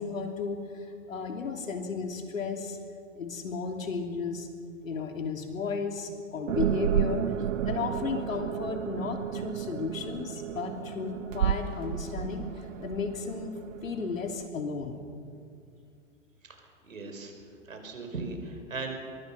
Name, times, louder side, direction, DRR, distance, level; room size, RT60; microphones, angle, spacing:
voice 1, 0.0-2.8 3.2-4.5 4.8-7.2 7.6-13.6 13.8-15.1, left 5 dB, 80° left, 4 dB, 3.4 m, -34 dB
sound 1, 6.5-14.5, right 10 dB, 70° right, 1.0 m, -32 dB
voice 2, 16.4-17.3 17.6-19.0, right 3 dB, 90° right, 4 dB, 5.1 m, -38 dB
24.5 x 22.0 x 5.9 m, 2.4 s
hypercardioid pair, 125°, 39 cm